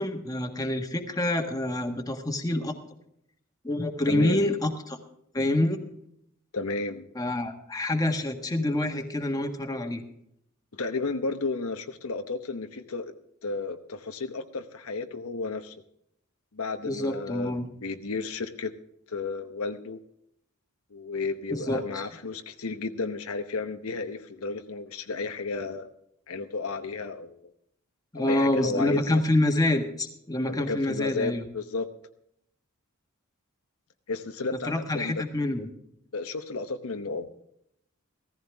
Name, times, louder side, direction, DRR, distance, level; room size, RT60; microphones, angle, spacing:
voice 1, 0.0-2.7 3.6-5.0 5.3-5.8 7.1-10.0 16.8-17.7 21.5-22.1 28.1-31.4 34.6-35.7, left 1 dB, 15° left, 4 dB, 1.4 m, -27 dB
voice 2, 4.1-4.4 6.5-7.1 10.7-13.1 13.4-15.7 16.5-18.7 19.1-20.0 20.9-25.9 26.3-27.4 28.1-29.2 30.5-31.9 34.1-35.4 36.1-37.3, left 3 dB, 80° left, 7 dB, 1.0 m, -33 dB
16.0 x 14.5 x 3.5 m, 0.73 s
head